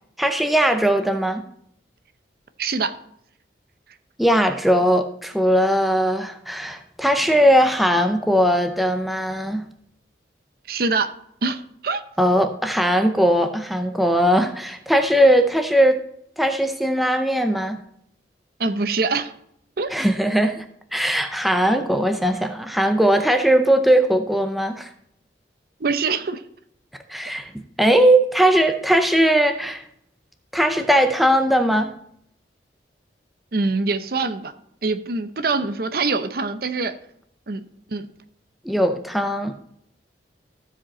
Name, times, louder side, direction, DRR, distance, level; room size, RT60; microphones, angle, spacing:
voice 1, 0.2-1.4 4.2-9.7 12.2-16.0 16.4-17.8 19.9-20.6 20.9-24.9 27.1-27.5 27.8-29.8 30.5-31.9 38.6-39.6, equal, ahead, 6 dB, 0.5 m, -19 dB
voice 2, 2.6-2.9 10.7-11.1 11.4-12.0 18.6-19.3 19.8-19.9 25.8-26.4 33.5-34.5 34.8-36.9 37.5-37.6 37.9-38.1, right 4 dB, 55° right, 11 dB, 0.6 m, -24 dB
15.0 x 5.1 x 4.2 m, 0.71 s
head